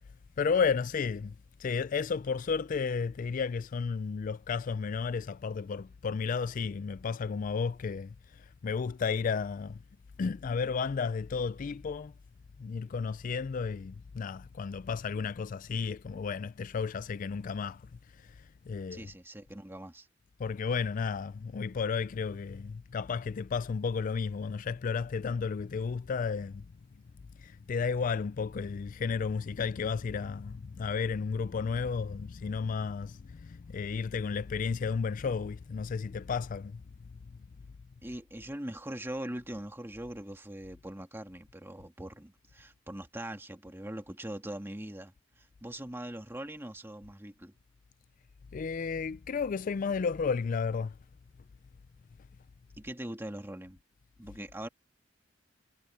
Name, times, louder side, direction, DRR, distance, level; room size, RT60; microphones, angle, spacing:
voice 1, 0.4-1.3 1.6-9.8 10.2-12.1 12.6-19.1 20.4-26.7 27.4-36.8 48.5-51.0, left 5 dB, 40° left, 0.3 m, -33 dB
voice 2, 18.9-20.1 38.0-47.5 52.8-53.8 54.2-54.7, right 1 dB, 10° right, 1.9 m, -41 dB
head